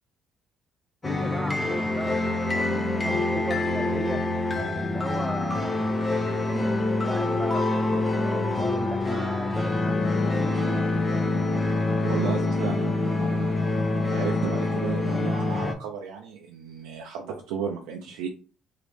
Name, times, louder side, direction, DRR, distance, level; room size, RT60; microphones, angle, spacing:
sound 1, 1.0-15.7, left 2 dB, 30° left, 0.7 m, -26 dB
voice 1, 1.0-4.3 4.6-5.8 6.4-10.6, right 2 dB, 20° right, 6 dB, 0.4 m, -37 dB
voice 2, 12.0-18.3, right 7 dB, 85° right, 0 dB, 0.5 m, -34 dB
3.1 x 2.8 x 3.2 m, 0.36 s
supercardioid pair, 65°, 0 cm